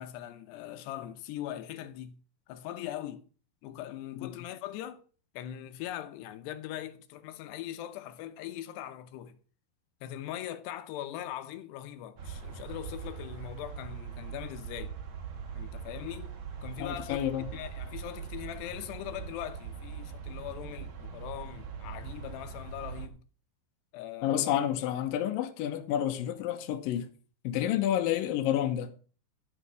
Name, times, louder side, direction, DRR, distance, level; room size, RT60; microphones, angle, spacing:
voice 1, 0.0-2.2 2.5-3.2 3.6-5.0 5.3-9.4 10.0-15.0 15.5-16.3 16.6-17.2 17.5-23.2 23.9-24.6, left 12 dB, 85° left, 3.0 m, -41 dB
sound 1, 12.2-23.1, right 6 dB, 75° right, 1.1 m, -41 dB
voice 2, 16.8-17.5 24.2-27.1 27.4-28.9, left 11 dB, 70° left, 2.5 m, -29 dB
12.0 x 5.8 x 6.2 m
omnidirectional pair, 4.7 m